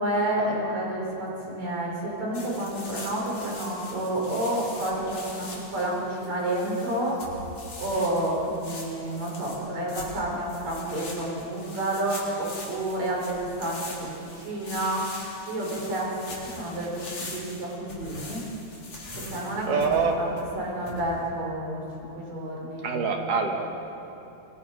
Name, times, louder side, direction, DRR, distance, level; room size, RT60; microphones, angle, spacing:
voice 1, 0.0-7.2 7.8-15.2 15.5-18.4 19.3-19.8 20.2-23.1, right 1 dB, 60° right, -3 dB, 6.3 m, -30 dB
sound 1, 2.3-21.3, left 2 dB, 65° left, 5.3 m, -42 dB
voice 2, 19.6-20.2 22.8-23.7, right 5 dB, 90° right, 2 dB, 3.6 m, -25 dB
25.5 x 23.0 x 5.1 m, 2.9 s
omnidirectional pair, 3.6 m